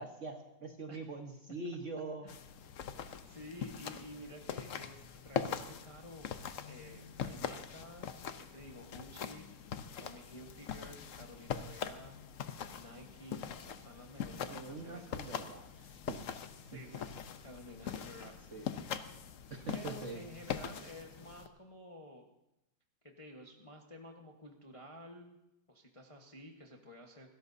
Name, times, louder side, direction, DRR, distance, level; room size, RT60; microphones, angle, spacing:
voice 1, 0.0-2.3 14.5-16.2 18.5-18.7 19.5-20.2 20.5-20.6, right 3 dB, 40° right, 3 dB, 1.3 m, -44 dB
sound 1, 2.3-21.5, left 8 dB, 75° left, 0.7 m, -42 dB
voice 2, 3.2-9.6 10.0-12.2 12.7-15.5 16.6-18.4 19.7-22.2 23.0-25.4 25.7-27.4, left 1 dB, 20° left, 1 dB, 0.9 m, -52 dB
27.5 x 13.5 x 2.7 m, 0.90 s
omnidirectional pair, 2.4 m